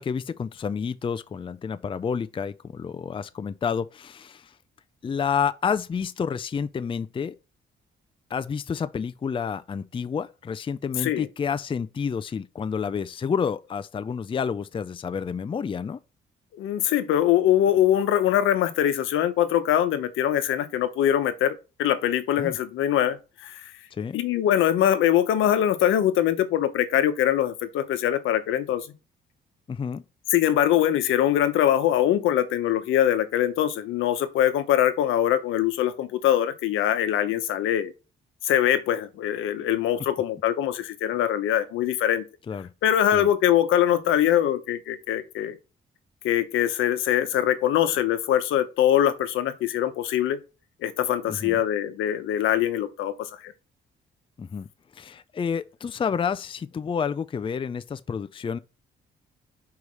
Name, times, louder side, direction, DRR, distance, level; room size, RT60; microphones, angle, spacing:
voice 1, 0.0-4.5 5.0-7.4 8.3-16.0 22.4-22.6 23.9-24.2 29.7-30.0 42.5-42.7 43.1-43.3 51.3-51.6 54.4-58.6, left 6 dB, 25° left, 0.4 m, -29 dB
voice 2, 16.6-23.6 24.1-28.9 30.3-37.9 38.4-42.2 42.8-45.6 46.2-50.4 50.8-53.5, left 11 dB, 85° left, 1.0 m, -23 dB
4.8 x 4.7 x 5.5 m
cardioid pair, 90°, 20 cm